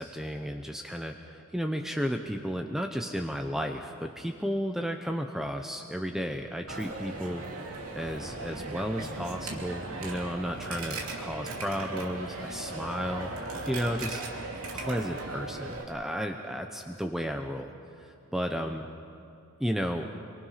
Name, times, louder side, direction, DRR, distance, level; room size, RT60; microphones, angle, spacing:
voice 1, 0.0-7.4 7.9-13.3 13.7-14.2 14.7-17.7 18.0-18.9 19.6-20.1, equal, ahead, 4 dB, 0.9 m, -33 dB
Coin (dropping), 6.7-15.8, right 2 dB, 80° right, 2.9 m, -37 dB
27.0 x 24.0 x 5.8 m, 2.7 s
head